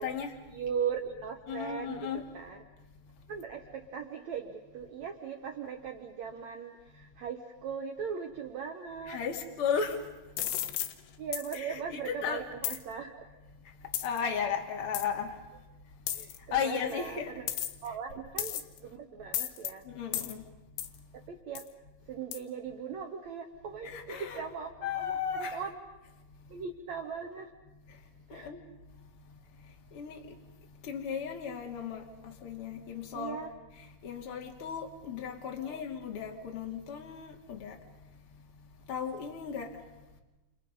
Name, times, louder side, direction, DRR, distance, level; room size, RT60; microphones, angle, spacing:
voice 1, 0.0-0.3 1.5-2.2 9.1-10.0 11.5-12.4 14.0-15.3 16.5-17.3 20.0-20.4 23.8-24.5 24.8-25.6 28.3-28.6 29.9-30.2 30.9-32.0 32.4-33.4 34.0-37.7 38.9-39.7, left 7 dB, 35° left, 2.7 m, -35 dB
voice 2, 0.5-2.6 3.3-9.2 11.2-13.3 16.1-17.4 17.8-19.8 21.1-21.7 22.1-25.1 25.4-25.7 26.5-27.5 28.3-28.5 33.1-33.5 35.6-35.8, right 7 dB, 75° right, 1.6 m, -39 dB
sound 1, 10.4-10.9 11.3-11.6 12.6-12.8 13.9-14.2 14.9-15.1 16.1-16.4 17.5-17.9 18.4-18.8 19.3-19.7 20.1-20.3 20.8-21.0 21.6-21.7 22.3-22.4, left 12 dB, 75° left, 3.5 m, -34 dB
29.0 x 29.0 x 5.4 m
omnidirectional pair, 5.3 m